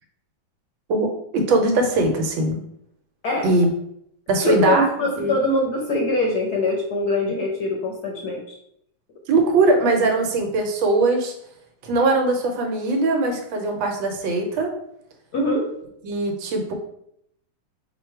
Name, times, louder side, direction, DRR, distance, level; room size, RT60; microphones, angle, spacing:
voice 1, 1.3-2.6 3.4-3.7 4.3-4.8 5.2-5.3 9.3-11.3 11.8-14.7 16.0-16.7, right 2 dB, 75° right, 3 dB, 1.4 m, -20 dB
voice 2, 4.4-8.4 15.3-15.6, left 1 dB, 60° left, 0 dB, 1.1 m, -23 dB
4.7 x 2.2 x 4.5 m, 0.73 s
omnidirectional pair, 2.2 m